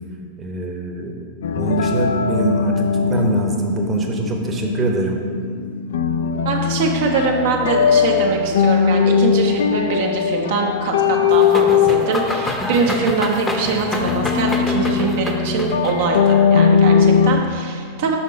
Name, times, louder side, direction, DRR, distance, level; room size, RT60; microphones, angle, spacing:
voice 1, 0.4-1.2 1.5-5.2, right 3 dB, 20° right, 1 dB, 0.9 m, -23 dB
sound 1, 1.4-17.4, left 6 dB, 60° left, 0.3 m, -19 dB
voice 2, 6.4-18.2, right 4 dB, 55° right, 1 dB, 0.8 m, -22 dB
sound 2, 11.3-16.3, left 1 dB, 10° left, 0.8 m, -27 dB
5.8 x 5.2 x 5.4 m, 2.1 s
figure-of-eight pair, 90°, 0 cm